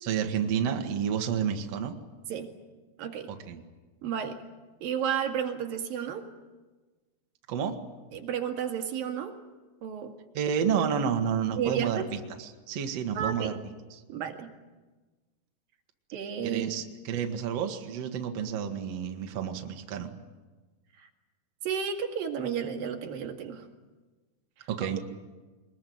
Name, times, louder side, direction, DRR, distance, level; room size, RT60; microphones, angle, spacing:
voice 1, 0.0-1.9 3.3-3.6 7.5-7.7 10.3-13.6 13.9-14.0 16.4-20.1 24.7-25.0, right 7 dB, 80° right, 4 dB, 1.4 m, -30 dB
voice 2, 3.0-3.3 4.0-4.4 4.8-6.2 8.1-9.3 9.8-10.1 11.6-12.1 13.1-13.6 14.1-14.5 16.1-16.8 21.0-21.1 21.6-23.6 24.8-24.9, right 8 dB, 55° right, 3 dB, 3.3 m, -32 dB
23.0 x 21.0 x 9.4 m, 1.3 s
omnidirectional pair, 5.5 m